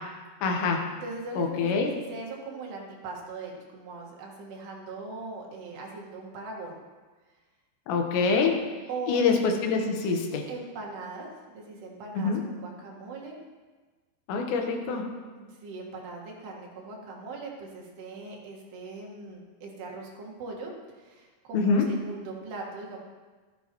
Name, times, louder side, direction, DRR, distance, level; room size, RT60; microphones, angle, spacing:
voice 1, 0.4-0.9 1.4-1.9 7.9-8.7 9.1-10.5 12.2-12.5 14.3-15.1 21.5-22.0, left 4 dB, 85° left, 2 dB, 3.4 m, -25 dB
voice 2, 1.0-6.8 8.9-9.5 10.5-13.4 15.4-20.7 21.0-23.0, right 3 dB, 75° right, -1 dB, 3.7 m, -40 dB
13.5 x 12.5 x 3.0 m, 1.3 s
omnidirectional pair, 4.9 m